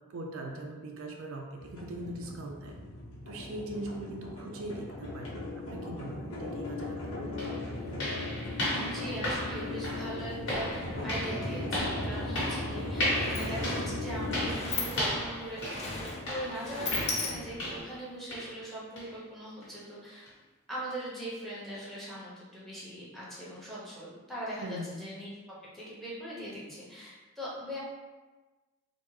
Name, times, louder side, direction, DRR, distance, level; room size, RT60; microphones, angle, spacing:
voice 1, 0.1-2.8 3.3-7.4 24.6-25.0, right 1 dB, 65° right, 1 dB, 0.4 m, -40 dB
sound 1, 1.6-14.5, left 2 dB, 80° left, 0.8 m, -38 dB
sound 2, 6.8-6.9 7.4-18.0 18.3-18.6 19.0-19.1 19.6-19.7 20.3-20.4, equal, 60° left, 1.2 m, -35 dB
voice 2, 8.7-15.6 16.3-20.3 20.7-27.8, right 1 dB, ahead, -7 dB, 0.8 m, -41 dB
Sliding door, 12.5-12.6 12.9-17.8, left 3 dB, 30° left, 0.4 m, -37 dB
3.4 x 2.0 x 3.1 m, 1.2 s
head